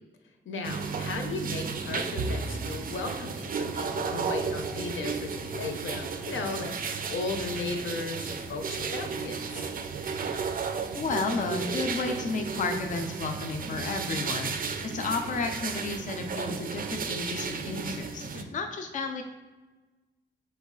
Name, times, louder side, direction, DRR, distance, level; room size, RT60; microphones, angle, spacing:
voice 1, 0.5-9.7 18.3-18.6, left 3 dB, 80° left, 5 dB, 0.7 m, -36 dB
sound 1, 0.6-18.4, right 5 dB, 45° right, 0.4 m, -33 dB
voice 2, 10.9-14.5 14.8-19.2, left 4 dB, 40° left, 5 dB, 0.4 m, -32 dB
4.6 x 3.1 x 3.7 m, 1.2 s
wide cardioid pair, 150°, 20 cm